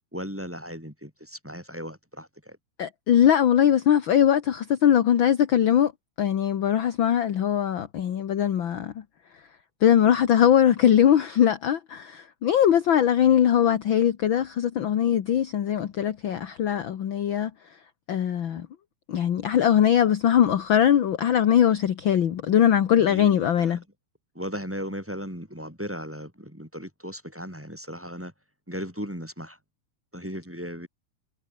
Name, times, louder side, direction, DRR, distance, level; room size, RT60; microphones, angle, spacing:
voice 1, 0.1-2.6 22.9-23.8 24.3-28.3 28.7-29.6 30.1-30.9, equal, 5° right, 6.2 m, -36 dB
voice 2, 2.8-5.9 6.2-8.9 9.8-17.5 18.1-18.7 19.1-23.8, left 9 dB, 55° left, 1.4 m, -21 dB
omnidirectional pair, 3.7 m